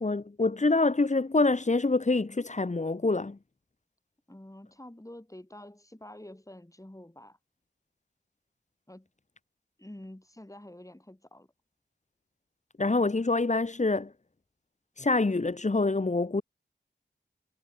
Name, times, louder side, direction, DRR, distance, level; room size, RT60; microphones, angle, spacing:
voice 1, 0.0-3.4 12.8-14.1 15.0-16.4, left 3 dB, 35° left, 1.1 m, -26 dB
voice 2, 4.3-7.4 8.9-9.1 9.8-11.5, left 1 dB, 15° left, 7.5 m, -48 dB
wide cardioid pair, 65°, 20 cm